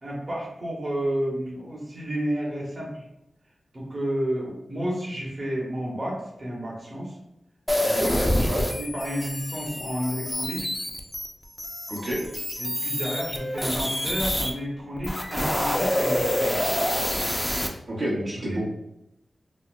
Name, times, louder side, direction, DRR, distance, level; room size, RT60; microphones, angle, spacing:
voice 1, 0.0-3.0 3.7-7.1 7.8-10.7 12.6-16.6 18.5-18.6, equal, 45° right, -4 dB, 1.0 m, -31 dB
sound 1, 7.7-14.5 15.0-17.7, left 1 dB, 5° left, 0.4 m, -27 dB
voice 2, 11.9-12.2 17.9-18.7, right 1 dB, 75° right, -7 dB, 0.9 m, -28 dB
4.0 x 2.0 x 2.5 m, 0.84 s
wide cardioid pair, 70°, 0 cm